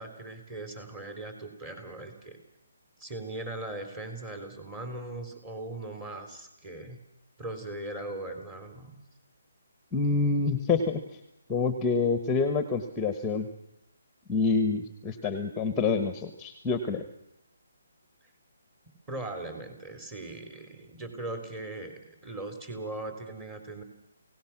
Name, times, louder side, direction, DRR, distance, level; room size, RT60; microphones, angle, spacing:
voice 1, 0.0-2.4 3.0-7.0 7.4-9.0 19.1-23.8, right 2 dB, 15° right, 7 dB, 3.7 m, -39 dB
voice 2, 9.9-11.0 11.5-13.5 14.3-17.0, left 4 dB, 10° left, 9 dB, 1.2 m, -27 dB
28.5 x 17.5 x 6.0 m, 0.82 s
hypercardioid pair, 160°, 0 cm